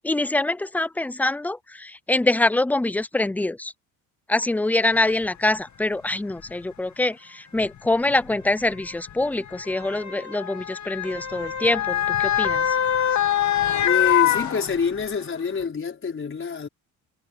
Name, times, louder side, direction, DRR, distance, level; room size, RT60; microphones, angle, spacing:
voice 1, 0.0-3.7 4.3-12.8, left 2 dB, 5° left, 0.5 m, -24 dB
Motor vehicle (road) / Siren, 5.2-5.3 6.3-6.5 7.6-15.2 15.6-15.7, left 10 dB, 50° left, 2.3 m, -25 dB
voice 2, 13.8-16.7, left 5 dB, 35° left, 5.5 m, -26 dB
cardioid pair, 115°, 36 cm